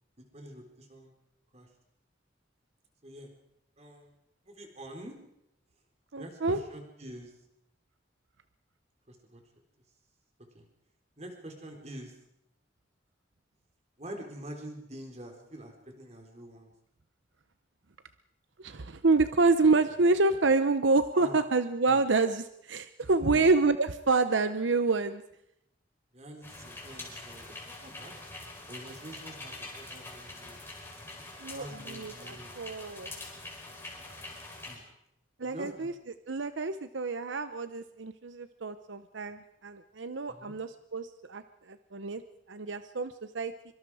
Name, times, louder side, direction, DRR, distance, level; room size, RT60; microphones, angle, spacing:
voice 1, 0.2-1.1 1.5-1.7 3.0-3.3 3.8-4.1 4.4-5.2 6.2-7.3 9.1-9.4 10.5-10.7 11.2-12.2 14.0-16.7 21.1-21.4 21.9-22.1 23.2-23.5 26.1-27.6 27.8-28.1 28.7-30.6 31.5-32.5 34.7-34.8 35.4-35.9 40.3-40.5, right 1 dB, 35° right, 3 dB, 4.0 m, -46 dB
voice 2, 6.1-6.6 18.6-25.2 31.4-33.2 35.4-35.9 36.3-42.2 42.5-43.5, right 3 dB, 80° right, 11 dB, 0.8 m, -27 dB
sound 1, 26.4-34.8, left 2 dB, 15° left, 4.5 m, -44 dB
24.5 x 24.5 x 4.9 m, 0.81 s
head